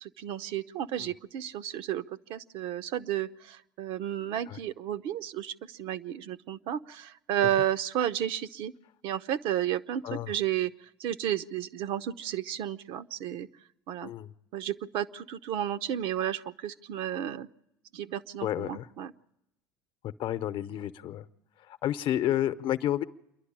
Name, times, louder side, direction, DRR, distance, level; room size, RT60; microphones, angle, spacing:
voice 1, 0.0-8.7 9.0-10.7 11.0-13.5 13.9-14.1 14.5-17.5 17.9-19.1, right 11 dB, 60° right, 12 dB, 0.7 m, -32 dB
voice 2, 18.4-18.9 20.2-21.2 21.8-23.0, left 12 dB, 55° left, 12 dB, 0.8 m, -30 dB
28.0 x 11.5 x 8.8 m, 0.88 s
hypercardioid pair, 75°, 10 cm